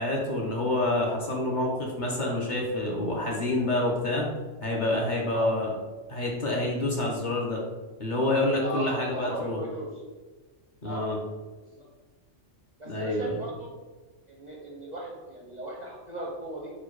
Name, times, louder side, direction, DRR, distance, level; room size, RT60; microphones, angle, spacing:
voice 1, 0.0-4.3 4.6-5.7 6.1-7.6 8.0-9.6 10.8-11.2 12.9-13.4, left 1 dB, 45° left, -2 dB, 0.7 m, -27 dB
voice 2, 8.5-9.9 10.8-11.1 11.6-11.9 12.8-13.7 14.3-16.7, right 1 dB, 50° right, -2 dB, 0.5 m, -37 dB
4.3 x 2.2 x 4.5 m, 1.3 s
omnidirectional pair, 1.3 m